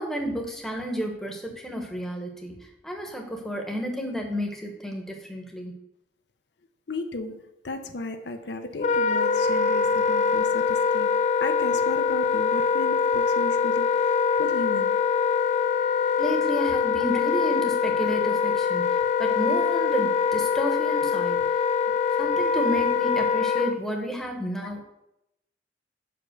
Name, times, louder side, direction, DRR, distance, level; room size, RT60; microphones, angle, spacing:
voice 1, 0.0-2.5 2.8-5.7 16.2-21.4 22.2-24.8, equal, ahead, 1 dB, 1.0 m, -31 dB
voice 2, 6.9-11.1 11.4-14.1 14.4-15.0 24.6-24.7, left 2 dB, 70° left, 7 dB, 0.7 m, -35 dB
Wind instrument woodwind instrument, 8.8-23.7, left 6 dB, 40° left, 0.3 m, -23 dB
5.6 x 5.2 x 6.5 m, 0.81 s
head